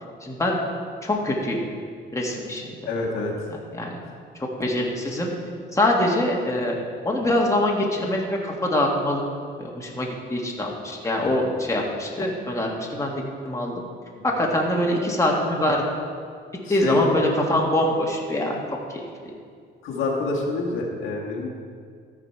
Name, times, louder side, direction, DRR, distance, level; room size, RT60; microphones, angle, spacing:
voice 1, 0.2-0.6 1.0-1.6 2.1-2.7 3.7-4.0 4.6-5.3 5.7-6.8 7.0-9.2 9.6-13.7 14.2-15.8 16.7-18.6 18.9-19.3, left 1 dB, 15° left, -2 dB, 1.7 m, -24 dB
voice 2, 2.9-3.3 11.2-11.4 16.7-17.1 19.8-21.5, left 3 dB, 85° left, -2 dB, 1.7 m, -26 dB
13.5 x 5.1 x 4.6 m, 2.1 s
cardioid pair, 90°, 20 cm